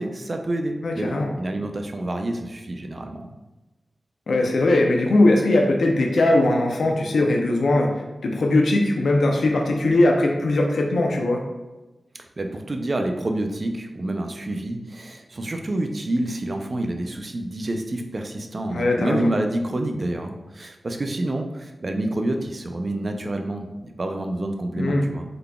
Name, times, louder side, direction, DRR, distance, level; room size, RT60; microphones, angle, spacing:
voice 1, 0.0-3.3 12.4-25.2, right 1 dB, 45° right, 4 dB, 0.4 m, -28 dB
voice 2, 0.8-1.3 4.3-7.9 8.2-11.4 18.7-19.3 24.8-25.0, left 2 dB, 90° left, 1 dB, 0.5 m, -20 dB
3.8 x 3.4 x 2.3 m, 1.1 s
wide cardioid pair, 90°, 0 cm